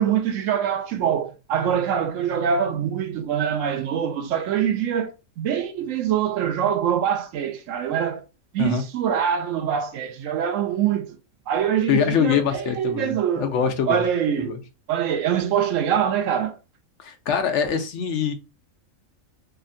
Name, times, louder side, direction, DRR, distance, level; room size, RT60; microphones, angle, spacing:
voice 1, 0.0-8.2 8.5-11.2 11.5-13.5 13.9-14.5 14.9-16.5, right 8 dB, 80° right, 1.0 m, -24 dB
voice 2, 11.9-14.0 14.4-14.6 17.0-18.3, left 7 dB, 70° left, 0.9 m, -24 dB
3.4 x 2.2 x 2.5 m
omnidirectional pair, 1.3 m